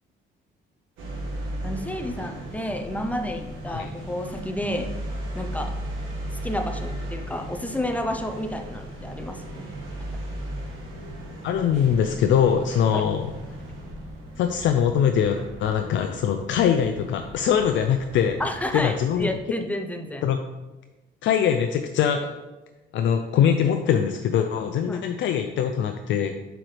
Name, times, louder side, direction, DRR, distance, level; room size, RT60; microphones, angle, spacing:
sound 1, 1.0-19.3, right 1 dB, 80° right, 1.4 m, -36 dB
voice 1, 1.6-4.9 5.3-5.8 6.4-9.6 12.9-13.1 18.4-20.3 24.9-25.0, left 1 dB, 5° left, 4 dB, 0.7 m, -30 dB
voice 2, 11.4-13.2 14.4-18.4 18.7-19.3 20.2-20.4 21.2-22.3 22.9-26.5, left 8 dB, 70° left, 6 dB, 0.4 m, -22 dB
7.6 x 4.6 x 3.3 m, 1.1 s
cardioid pair, 90°, 20 cm